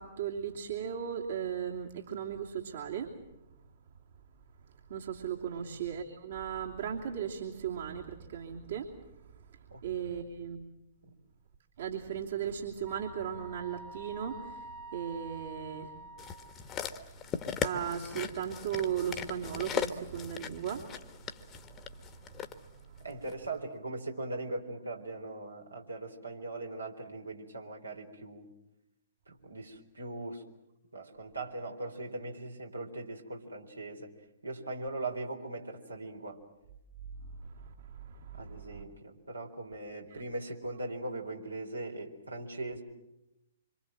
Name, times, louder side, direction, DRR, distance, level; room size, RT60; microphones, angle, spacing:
voice 1, 0.0-3.2 4.7-10.6 11.8-16.0 16.6-23.0 37.2-38.8 40.1-40.2, right 8 dB, 55° right, -1 dB, 2.9 m, -38 dB
Wind instrument woodwind instrument, 12.8-16.7, right 2 dB, 25° right, 1.4 m, -47 dB
sound 1, 16.2-22.5 23.3-23.4, left 8 dB, 20° left, 1.5 m, -38 dB
voice 2, 23.0-28.5 29.3-30.4 30.9-34.1 34.4-36.4 38.3-42.8, right 2 dB, 80° right, 1 dB, 3.9 m, -40 dB
26.0 x 26.0 x 7.7 m, 0.89 s
figure-of-eight pair, 115°, 0 cm